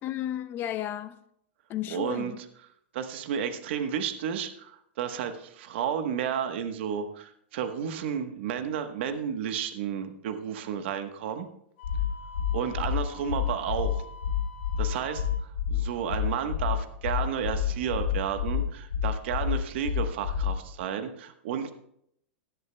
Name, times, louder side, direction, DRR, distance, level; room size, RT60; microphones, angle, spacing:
voice 1, 0.0-1.2 1.7-2.4, left 12 dB, 35° left, 0.8 m, -33 dB
voice 2, 1.9-2.5 2.9-11.5 12.5-14.0 14.8-21.7, right 8 dB, 65° right, 1.1 m, -32 dB
sound 1, 11.8-20.8, left 9 dB, 85° left, 3.0 m, -28 dB
Wind instrument woodwind instrument, 11.8-15.5, left 4 dB, 70° left, 1.8 m, -47 dB
17.5 x 10.5 x 2.2 m
hypercardioid pair, 125°, 6 cm